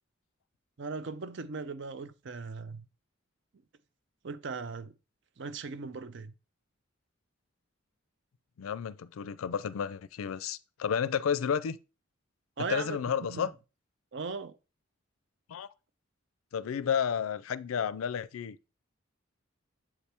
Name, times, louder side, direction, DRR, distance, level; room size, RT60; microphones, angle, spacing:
voice 1, 0.8-2.9 4.2-4.9 5.4-6.3 12.6-13.0 13.3-13.5 14.1-14.6, right 4 dB, 60° right, 0.5 m, -38 dB
voice 2, 8.6-11.8 12.7-13.5 15.5-15.7 16.5-18.6, left 7 dB, 85° left, 0.4 m, -31 dB
7.6 x 4.3 x 3.3 m
head